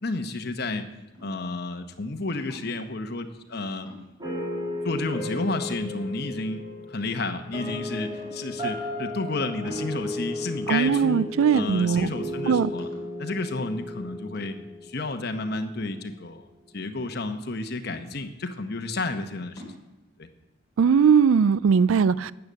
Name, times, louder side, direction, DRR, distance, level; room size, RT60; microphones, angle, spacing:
voice 1, 0.0-0.8 1.2-3.9 4.8-6.6 6.9-11.2 11.5-12.9 13.2-14.6 14.8-16.5 16.7-19.7 20.2-20.3, left 2 dB, 55° left, 7 dB, 1.0 m, -31 dB
sound 1, 1.1-1.6 2.5-2.9 3.9-4.4 4.9-5.0 5.3-5.9 6.5-6.6 7.0-7.7 8.2-8.6 9.7-10.4 11.1-11.7 12.1-12.2 12.8-13.2 14.3-14.8 15.8-16.7 17.9-18.5 19.6-19.8, equal, 20° left, 4.1 m, -48 dB
sound 2, 4.2-15.3, left 1 dB, 20° right, 3.5 m, -35 dB
voice 2, 10.7-12.1 12.5-12.7 20.8-22.3, right 6 dB, 85° right, 20 dB, 0.4 m, -20 dB
12.0 x 8.0 x 7.4 m, 1.1 s
head